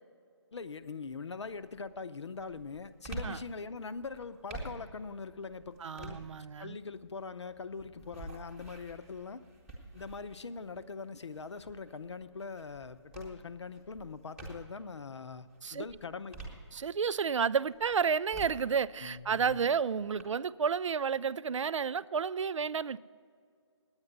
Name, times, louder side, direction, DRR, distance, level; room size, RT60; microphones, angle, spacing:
voice 1, 0.5-6.2 6.6-9.4 9.9-16.4 19.0-19.6, left 4 dB, 70° left, 0.7 m, -42 dB
sound 1, 0.5-0.9 1.4-14.9 15.4-17.2 17.6-20.2, right 2 dB, 5° right, 1.0 m, -49 dB
voice 2, 5.8-6.8 15.6-15.8 16.7-23.0, right 6 dB, 90° right, 0.4 m, -31 dB
9.8 x 8.8 x 8.0 m
hypercardioid pair, 170°, 15 cm